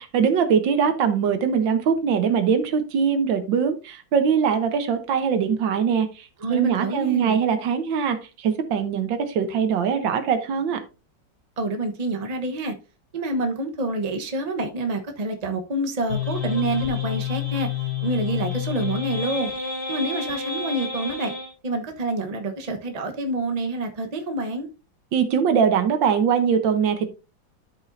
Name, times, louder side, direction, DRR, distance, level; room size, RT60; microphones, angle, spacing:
voice 1, 0.0-10.8 25.1-27.1, right 7 dB, 85° right, 1.7 m, -22 dB
voice 2, 6.4-7.4 11.6-12.8 13.1-17.7 18.0-19.5 19.9-21.3 21.6-24.7, right 2 dB, 25° right, 0.9 m, -27 dB
sound 1, 16.1-21.5, left 7 dB, 65° left, 3.4 m, -29 dB
13.0 x 5.2 x 2.6 m
omnidirectional pair, 2.0 m